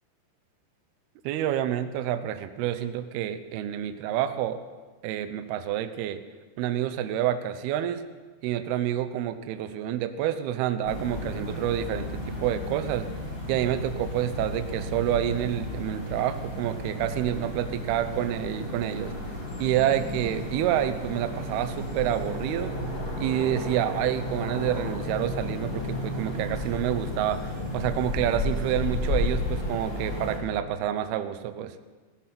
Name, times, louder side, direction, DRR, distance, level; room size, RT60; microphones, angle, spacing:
voice 1, 1.2-4.6 5.0-6.2 6.6-8.0 8.4-13.1 13.5-19.1 19.6-22.7 23.2-31.8, right 11 dB, 80° right, 10 dB, 2.3 m, -28 dB
sound 1, 10.8-30.4, left 1 dB, 35° left, 1.6 m, -33 dB
16.5 x 12.0 x 5.9 m, 1.4 s
omnidirectional pair, 5.2 m